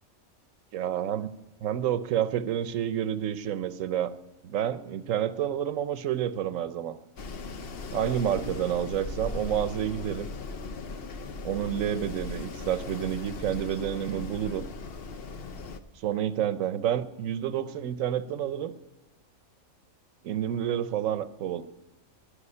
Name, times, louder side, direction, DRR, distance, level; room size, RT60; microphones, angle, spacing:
voice 1, 0.7-1.3 1.6-4.1 4.4-7.0 7.9-10.3 11.4-14.7 16.0-18.7 20.2-21.6, right 10 dB, 75° right, 13 dB, 1.1 m, -29 dB
Wind, 7.2-15.8, left 3 dB, 50° left, 0.9 m, -38 dB
10.5 x 9.8 x 9.8 m, 1.0 s
omnidirectional pair, 1.4 m